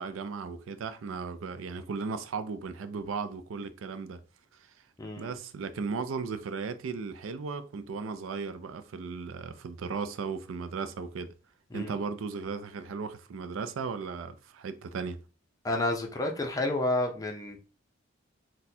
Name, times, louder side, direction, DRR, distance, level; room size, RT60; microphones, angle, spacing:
voice 1, 0.0-4.2 4.5-4.7 5.2-11.3 11.7-15.2, right 5 dB, 85° right, 0.4 m, -36 dB
voice 2, 5.0-5.3 11.7-11.9 15.6-17.6, left 2 dB, 20° left, 0.5 m, -30 dB
4.1 x 2.1 x 2.7 m
head